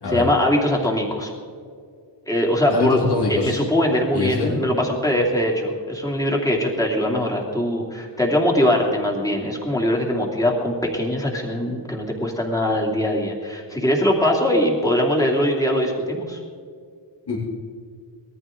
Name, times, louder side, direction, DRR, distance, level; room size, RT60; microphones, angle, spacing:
voice 1, 0.0-1.3 2.3-3.0 3.3-16.4, left 1 dB, 10° left, -2 dB, 2.8 m, -21 dB
voice 2, 2.7-3.6 4.1-4.5 17.3-17.4, left 3 dB, 60° left, -5 dB, 3.2 m, -23 dB
20.0 x 14.0 x 3.8 m, 2.2 s
wide cardioid pair, 135°, 45 cm